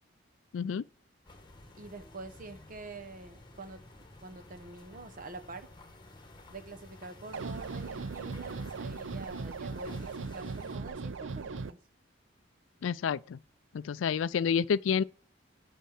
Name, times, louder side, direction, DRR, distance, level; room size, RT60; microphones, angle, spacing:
voice 1, 0.5-0.8 12.8-13.4 13.7-15.0, left 7 dB, 90° left, 0.4 m, -29 dB
sound 1, 1.3-10.8, left 2 dB, 25° left, 1.3 m, -53 dB
voice 2, 1.7-3.8 4.2-5.7 6.5-11.8, right 3 dB, 45° right, 1.1 m, -46 dB
sound 2, 7.3-11.7, right 4 dB, 85° right, 0.5 m, -38 dB
8.3 x 5.6 x 7.4 m
head